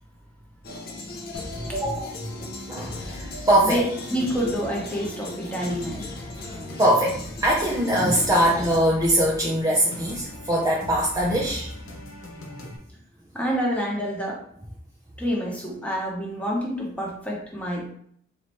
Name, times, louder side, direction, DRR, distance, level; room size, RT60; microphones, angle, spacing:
sound 1, 0.6-8.8, left 2 dB, 45° left, 0.6 m, -38 dB
sound 2, 1.3-12.8, left 1 dB, 85° left, 0.9 m, -40 dB
voice 1, 1.7-2.3 2.7-3.8 6.8-11.7 12.6-12.7, right 1 dB, 15° right, -4 dB, 0.5 m, -22 dB
voice 2, 3.6-6.1 13.3-14.4 15.2-17.9, equal, 5° left, -2 dB, 1.0 m, -28 dB
4.0 x 3.1 x 3.0 m, 0.63 s
head